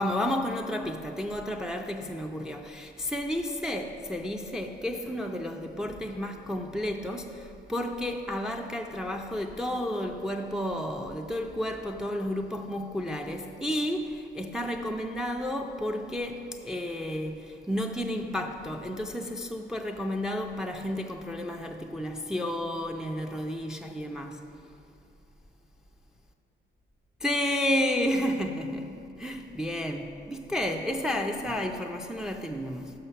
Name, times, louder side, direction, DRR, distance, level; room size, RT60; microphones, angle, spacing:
voice 1, 0.0-24.4 27.2-32.9, left 1 dB, 5° right, 0.4 m, -31 dB
5.7 x 5.6 x 5.5 m
cardioid pair, 90°, 20 cm